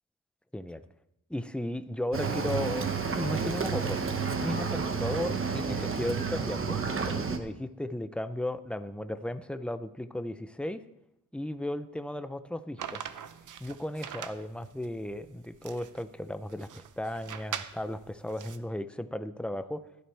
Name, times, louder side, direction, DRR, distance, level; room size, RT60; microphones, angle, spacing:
voice 1, 1.3-4.0 4.4-6.8 7.1-10.8 11.3-13.0 13.6-19.8, left 1 dB, 5° left, 10 dB, 0.5 m, -35 dB
Cricket / Waves surf, 2.1-7.4, right 5 dB, 40° right, 1.1 m, -31 dB
sound 1, 12.8-18.6, right 8 dB, 60° right, 0.8 m, -42 dB
15.5 x 12.0 x 3.4 m, 0.83 s
wide cardioid pair, 125°, 34 cm